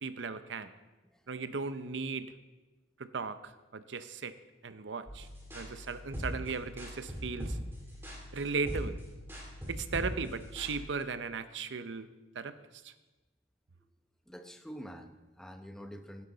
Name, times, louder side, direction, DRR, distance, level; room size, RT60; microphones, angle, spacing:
voice 1, 0.0-0.7 1.3-2.3 3.0-4.3 4.6-5.3 5.5-7.6 8.3-9.0 9.7-12.1 12.3-12.9, right 4 dB, 85° right, 12 dB, 0.7 m, -37 dB
sound 1, 5.1-10.8, equal, 15° right, 3.3 m, -41 dB
voice 2, 14.3-16.3, equal, 5° left, 5 dB, 0.9 m, -47 dB
16.5 x 10.5 x 4.0 m, 1.1 s
head